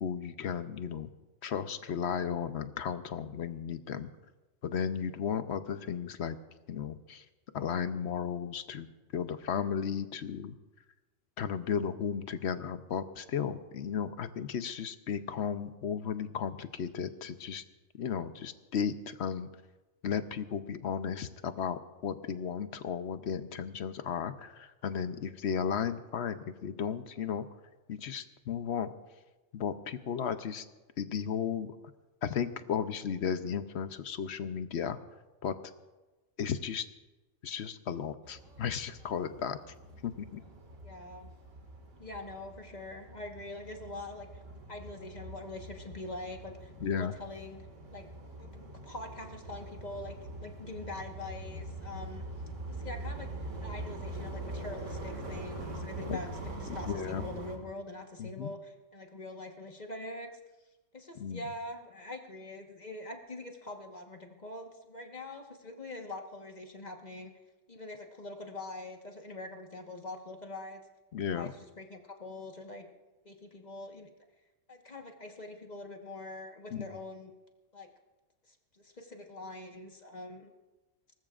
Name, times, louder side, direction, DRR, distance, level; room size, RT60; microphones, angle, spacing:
voice 1, 0.0-1.1 1.4-4.1 4.6-6.4 6.7-7.2 7.5-8.9 9.1-10.5 11.4-17.6 17.9-19.5 20.0-27.5 27.9-28.9 29.5-30.6 31.0-31.7 32.2-35.0 35.4-35.5 36.4-36.9 37.4-39.6 40.0-40.4 46.8-47.1 56.1-56.2 56.7-57.3 58.2-58.5 61.2-61.4 71.1-71.5 76.7-76.8, left 7 dB, 65° left, 11 dB, 0.9 m, -34 dB
sound 1, 38.2-57.6, right 1 dB, 75° right, 2.3 m, -43 dB
voice 2, 40.8-41.3 42.0-44.4 44.7-46.7 47.0-47.6 47.9-48.0 48.4-52.2 52.7-60.4 60.9-67.3 67.7-70.8 71.3-72.9 73.2-74.1 74.7-77.3 77.7-77.9 78.5-80.5, left 2 dB, 35° left, 3 dB, 1.4 m, -44 dB
23.5 x 19.0 x 2.5 m, 1.2 s
omnidirectional pair, 1.3 m